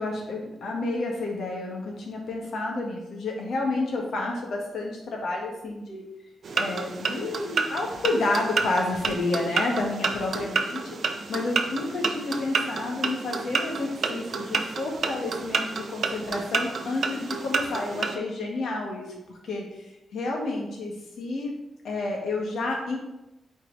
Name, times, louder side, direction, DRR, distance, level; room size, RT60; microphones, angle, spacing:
voice 1, 0.0-6.1 6.5-11.0 11.3-19.1 19.4-19.6 20.1-21.5 21.8-23.0, left 2 dB, 65° left, 0 dB, 1.7 m, -30 dB
sound 1, 6.4-18.2, right 4 dB, 45° right, 0.6 m, -30 dB
8.0 x 4.6 x 4.0 m, 0.94 s
wide cardioid pair, 165°, 0 cm